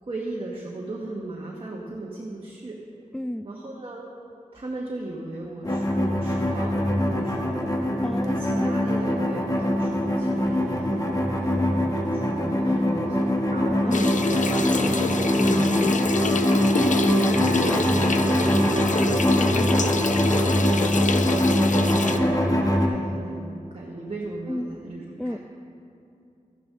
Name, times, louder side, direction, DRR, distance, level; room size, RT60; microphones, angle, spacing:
voice 1, 0.0-2.8 3.4-4.0 4.5-6.7 7.0-7.7 8.2-14.5 14.7-16.0 16.8-25.4, right 2 dB, 40° right, -3 dB, 1.2 m, -36 dB
voice 2, 3.1-3.5 8.0-8.5 13.5-14.1 19.3-19.8 24.5-24.8 25.2-25.4, left 1 dB, 5° left, 12 dB, 0.4 m, -32 dB
sound 1, 5.6-22.9, equal, 25° left, 1.1 m, -23 dB
sound 2, 13.5-16.4 16.7-16.9 17.5-18.0, right 3 dB, 65° right, 0.8 m, -38 dB
sound 3, 13.9-22.2, left 4 dB, 70° left, 0.5 m, -28 dB
13.0 x 10.0 x 3.7 m, 2.7 s
wide cardioid pair, 75°, 14 cm